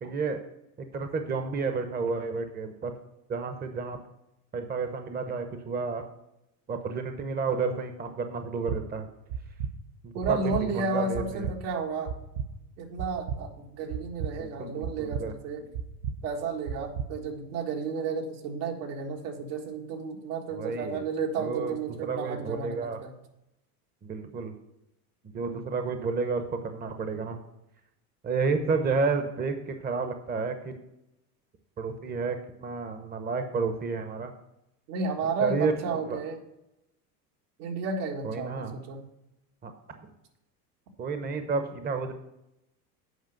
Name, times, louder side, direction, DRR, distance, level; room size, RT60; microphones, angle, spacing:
voice 1, 0.0-0.4 0.8-2.9 3.3-4.0 4.5-6.0 6.7-9.1 10.0-11.5 14.4-15.3 20.5-21.1 21.4-21.7 22.0-23.0 24.0-24.5 25.2-27.4 28.2-30.8 31.8-34.3 35.4-36.2 38.2-38.8 39.6-39.7 40.0-40.1 41.0-42.1, right 4 dB, 20° right, 7 dB, 0.9 m, -31 dB
sound 1, 8.7-8.8 9.3-9.7 10.2-10.6 11.1-11.5 12.1-12.5 13.0-13.4 13.9-14.3 14.8-15.2 15.7-16.1 16.7-17.1, right 7 dB, 55° right, 0.8 m, -32 dB
voice 2, 10.1-12.1 12.8-15.7 16.2-23.1 34.9-36.4 37.6-39.0, right 4 dB, 70° right, 2 dB, 1.8 m, -32 dB
8.1 x 5.1 x 6.4 m, 0.88 s
hypercardioid pair, 100°, 47 cm